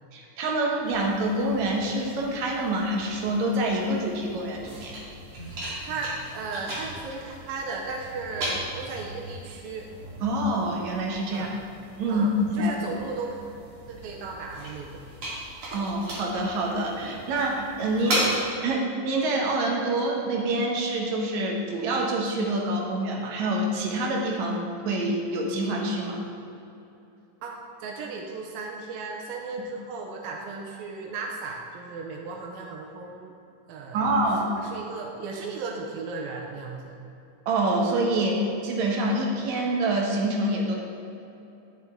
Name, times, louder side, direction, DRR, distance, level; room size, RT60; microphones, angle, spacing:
voice 1, 0.1-5.0 10.2-11.5 12.0-12.7 15.7-18.1 18.6-26.2 33.9-34.6 37.5-40.8, right 1 dB, 65° right, 0 dB, 2.0 m, -26 dB
sound 1, 0.8-18.4, right 1 dB, 45° right, 2.7 m, -37 dB
voice 2, 5.8-9.9 11.3-11.5 12.1-13.4 13.9-15.0 18.0-18.4 27.4-33.3 33.7-34.1 34.6-37.0, right 4 dB, 90° right, 0 dB, 2.6 m, -36 dB
9.6 x 7.4 x 3.6 m, 2.8 s
omnidirectional pair, 4.0 m